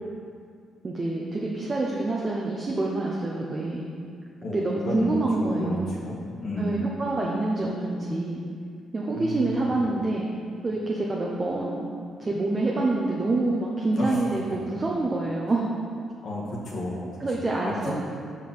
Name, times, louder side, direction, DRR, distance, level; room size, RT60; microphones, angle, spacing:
voice 1, 0.8-3.8 4.5-6.0 6.6-8.4 8.9-10.2 10.6-11.9 12.2-15.7 17.2-17.9, right 2 dB, 30° right, -3 dB, 0.8 m, -26 dB
voice 2, 4.4-6.8 9.1-9.8 13.9-14.1 16.2-17.1 17.6-17.9, left 1 dB, 65° left, -6 dB, 1.6 m, -32 dB
5.4 x 4.8 x 6.0 m, 2.2 s
cardioid pair, 90°, 0 cm